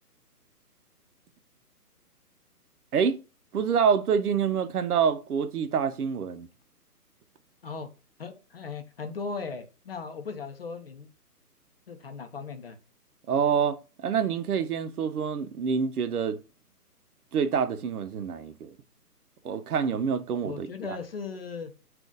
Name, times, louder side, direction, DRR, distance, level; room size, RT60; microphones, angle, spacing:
voice 1, 3.5-6.5 13.3-16.4 17.3-18.8 19.4-21.0, right 7 dB, 70° right, 0.6 m, -27 dB
voice 2, 8.2-11.1 11.9-12.8 20.4-21.7, left 5 dB, 40° left, 0.6 m, -37 dB
3.7 x 2.5 x 3.8 m
hypercardioid pair, 150°, 47 cm